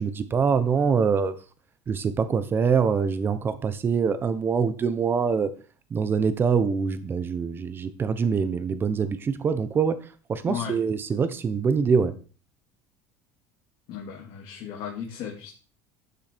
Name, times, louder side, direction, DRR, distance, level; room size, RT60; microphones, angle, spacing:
voice 1, 0.0-1.3 1.9-5.5 5.9-10.0 10.3-12.1, right 6 dB, 25° right, 12 dB, 1.1 m, -24 dB
voice 2, 13.9-15.5, left 8 dB, 55° left, -1 dB, 2.5 m, -35 dB
12.5 x 6.9 x 4.5 m, 0.38 s
cardioid pair, 145°, 9 cm